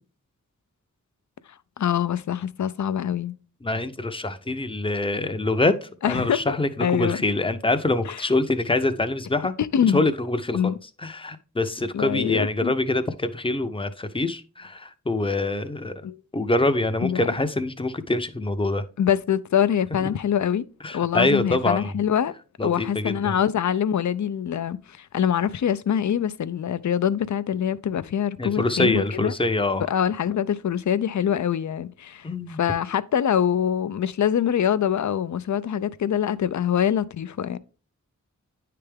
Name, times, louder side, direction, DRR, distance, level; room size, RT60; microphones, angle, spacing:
voice 1, 1.8-3.3 6.0-7.2 8.0-8.2 9.6-10.0 10.5-10.8 11.9-12.7 16.0-16.2 17.0-17.3 19.0-20.7 20.9-22.3 22.6-29.3 29.9-37.6, left 9 dB, 70° left, 0.4 m, -24 dB
voice 2, 3.6-9.5 9.9-10.7 11.0-15.9 16.3-18.8 20.8-21.9 22.6-23.4 28.4-29.9 32.2-32.6, left 2 dB, 15° left, 0.6 m, -25 dB
9.6 x 3.4 x 3.3 m
wide cardioid pair, 65°, 30 cm